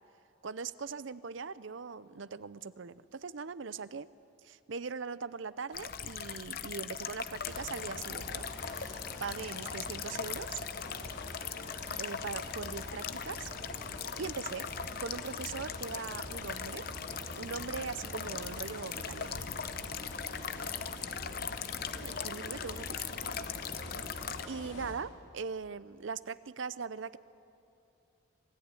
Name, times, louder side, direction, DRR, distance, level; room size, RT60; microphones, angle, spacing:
voice 1, 0.4-4.1 4.4-8.5 8.7-10.6 12.0-13.5 14.2-14.7 15.0-16.9 17.4-19.3 22.0-23.0 24.5-27.2, right 5 dB, 70° right, 16 dB, 0.6 m, -40 dB
sound 1, 5.7-24.5, left 7 dB, 50° left, 0.7 m, -40 dB
sound 2, 7.4-24.9, left 1 dB, 65° left, 3.5 m, -45 dB
25.0 x 15.0 x 9.8 m, 2.8 s
head